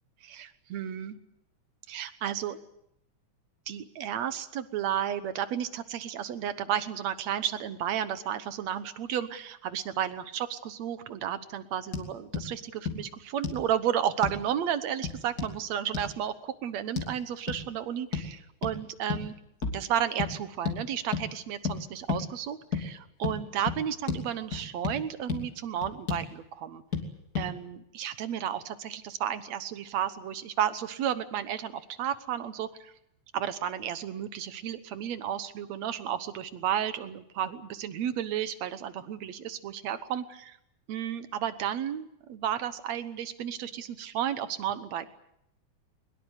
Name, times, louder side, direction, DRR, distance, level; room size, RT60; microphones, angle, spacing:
voice 1, 0.2-1.2 1.9-2.6 3.7-19.3 19.7-26.8 27.4-32.9 33.3-40.6 40.9-45.1, right 10 dB, 70° right, 12 dB, 2.2 m, -32 dB
sound 1, 11.9-12.1 12.3-12.5 12.9-13.0 13.4-13.6 14.2-14.4 15.0-15.5 15.9-16.1 17.0-17.1 17.5-17.6 18.1-18.3 18.6-18.8 19.1-19.3 19.6-19.8 20.2-20.3 20.6-20.8 21.1-21.3 21.6-21.8 22.1-22.2 22.7-22.9 23.2-23.4 23.7-23.8 24.1-24.2 24.5-25.0 25.3-25.4 25.8-26.3 26.9-27.1 27.3-27.5, left 6 dB, 30° left, 3.1 m, -31 dB
22.5 x 21.5 x 8.2 m, 0.78 s
omnidirectional pair, 3.4 m